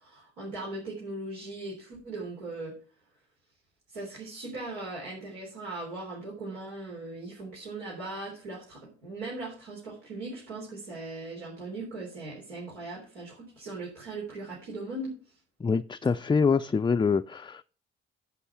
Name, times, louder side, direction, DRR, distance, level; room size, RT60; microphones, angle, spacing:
voice 1, 0.0-2.7 3.9-15.1, right 2 dB, 85° right, 3.8 m, -39 dB
voice 2, 15.6-17.6, left 5 dB, 15° left, 0.5 m, -25 dB
11.0 x 6.0 x 5.8 m
hypercardioid pair, 45°, 30 cm